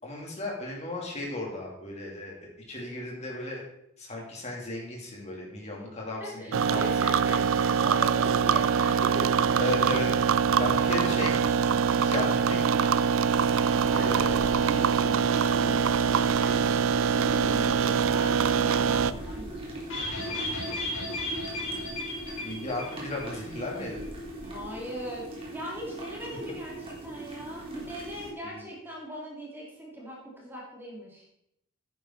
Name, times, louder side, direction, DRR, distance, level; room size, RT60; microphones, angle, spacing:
voice 1, 0.0-2.3 2.7-3.6 4.0-6.9 7.3-7.5 9.6-12.9 13.9-14.6 17.9-18.2 21.6-21.9 22.4-24.1 28.4-28.6, left 2 dB, 30° left, -2 dB, 3.1 m, -35 dB
voice 2, 6.2-9.8 13.6-19.9 24.4-31.3, equal, 10° right, -4 dB, 2.5 m, -40 dB
sound 1, 6.5-19.1, right 7 dB, 65° right, 0.4 m, -24 dB
sound 2, 12.1-28.3, right 1 dB, 25° right, 3.0 m, -40 dB
sound 3, 19.9-23.4 23.6-23.7 24.0-24.1, left 1 dB, 65° left, 4.0 m, -34 dB
10.5 x 9.4 x 4.0 m, 0.78 s
head